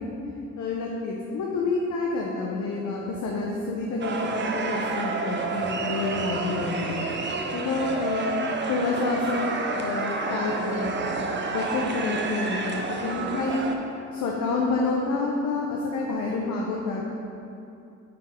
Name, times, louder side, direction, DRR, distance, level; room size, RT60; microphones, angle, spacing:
voice 1, 0.6-7.0 7.5-8.4 8.7-10.9 11.5-13.7 14.1-17.0, left 3 dB, 70° left, -2 dB, 0.8 m, -28 dB
sound 1, 4.0-13.8, right 3 dB, 35° right, 0.7 m, -29 dB
8.9 x 3.8 x 4.4 m, 2.6 s
cardioid pair, 90°, 30 cm